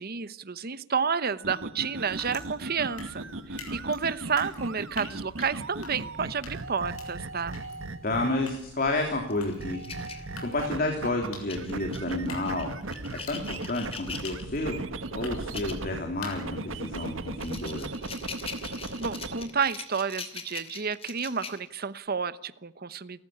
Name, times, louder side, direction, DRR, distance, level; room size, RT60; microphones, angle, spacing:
voice 1, 0.0-7.6 19.0-23.2, right 6 dB, 45° right, 15 dB, 0.9 m, -31 dB
sound 1, 1.4-8.6 9.6-11.3 11.6-16.0 16.3-19.4, right 2 dB, 65° right, 1.6 m, -37 dB
sound 2, 2.0-17.6, left 2 dB, 90° left, 6.9 m, -47 dB
voice 2, 8.0-12.7 13.3-14.8 15.1-17.9, left 2 dB, 45° left, 3 dB, 3.1 m, -30 dB
sound 3, 9.3-10.9 11.5-14.7 15.4-15.8 16.2-16.4 16.9-22.0, left 5 dB, 30° left, 2.7 m, -41 dB
29.0 x 14.5 x 8.7 m, 0.83 s
head